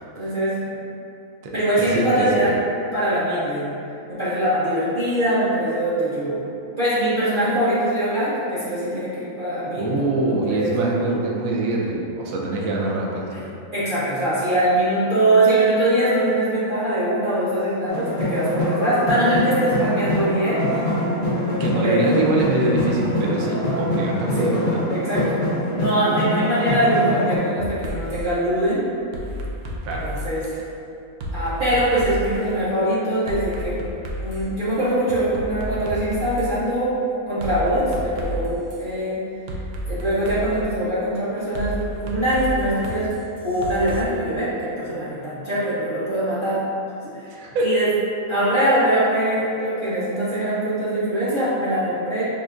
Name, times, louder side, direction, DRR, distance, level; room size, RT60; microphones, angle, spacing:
voice 1, 0.2-0.6 1.5-2.6 2.9-3.7 4.1-6.5 6.8-10.9 13.7-20.7 21.8-22.1 24.3-24.5 24.9-25.4 25.7-28.9 30.0-30.4 31.3-33.9 34.2-36.9 37.3-39.2 39.9-43.1 43.4-46.6 47.1-47.9 48.3-52.2, right 1 dB, 45° right, -12 dB, 0.8 m, -22 dB
voice 2, 1.9-2.5 9.7-13.5 21.6-24.8 29.8-30.1 47.3-47.7, right 2 dB, 70° right, -2 dB, 1.0 m, -24 dB
sound 1, 17.9-27.4, left 1 dB, 60° left, 0.5 m, -24 dB
sound 2, 27.6-28.3 29.1-30.6 31.2-32.4 33.3-34.6 35.1-36.5 37.4-38.8 39.5-40.7 41.5-44.0, equal, 90° right, 0.5 m, -31 dB
5.0 x 2.5 x 2.5 m, 2.7 s
omnidirectional pair, 1.6 m